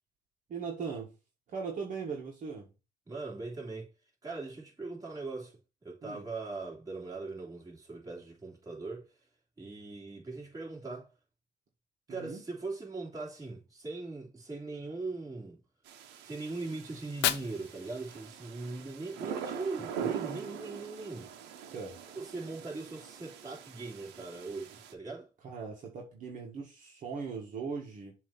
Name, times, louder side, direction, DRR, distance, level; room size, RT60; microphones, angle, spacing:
voice 1, 0.5-1.1 1.5-2.7 6.0-6.3 12.1-12.4 21.7-22.0 25.4-28.1, right 5 dB, 50° right, 1.6 m, -39 dB
voice 2, 3.1-3.9 4.2-9.1 9.6-11.1 12.1-15.6 16.2-21.3 22.1-25.3, right 3 dB, 20° right, 3.2 m, -40 dB
sound 1, 15.9-24.9, right 8 dB, 90° right, 1.0 m, -43 dB
Fire, 16.9-18.9, left 13 dB, 85° left, 0.6 m, -35 dB
7.4 x 3.0 x 5.7 m
cardioid pair, 110°, 17 cm